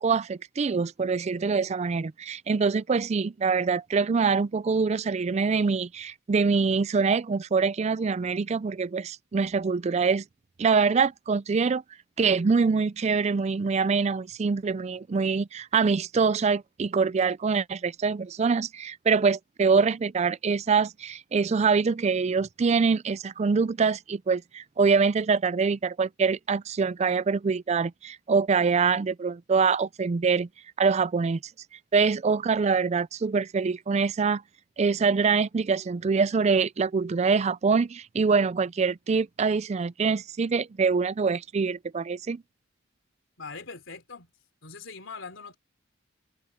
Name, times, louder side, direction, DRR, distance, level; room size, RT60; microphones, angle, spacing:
voice 1, 0.0-10.2 10.6-11.8 12.2-30.5 30.8-31.4 31.9-34.4 34.8-42.4, right 5 dB, 35° right, 0.4 m, -24 dB
voice 2, 43.4-44.3 44.6-45.6, left 4 dB, 70° left, 3.7 m, -41 dB
head